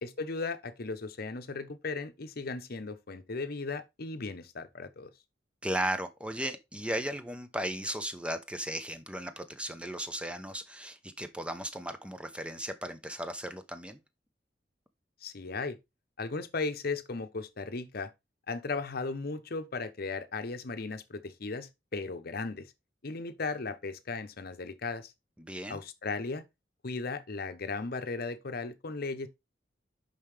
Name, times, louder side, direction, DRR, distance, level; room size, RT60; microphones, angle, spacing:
voice 1, 0.0-5.1 15.2-15.8 16.2-18.1 18.5-22.7 23.0-25.1 25.7-26.4 26.8-29.3, left 3 dB, 55° left, 0.8 m, -36 dB
voice 2, 5.6-14.0 25.4-25.8, right 1 dB, 5° right, 0.7 m, -36 dB
5.6 x 5.5 x 3.2 m
head